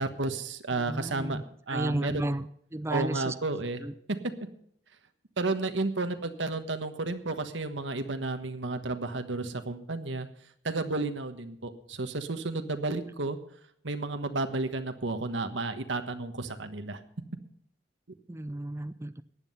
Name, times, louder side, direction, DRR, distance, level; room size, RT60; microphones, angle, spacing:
voice 1, 0.0-2.3 2.9-3.8 5.4-10.3 10.6-13.4 13.8-17.0, right 3 dB, 80° right, 8 dB, 1.3 m, -32 dB
voice 2, 0.9-1.4 1.7-2.5 2.7-3.3 3.8-3.9 18.3-19.2, right 1 dB, 15° right, 12 dB, 0.5 m, -32 dB
15.0 x 9.9 x 5.6 m, 0.68 s
head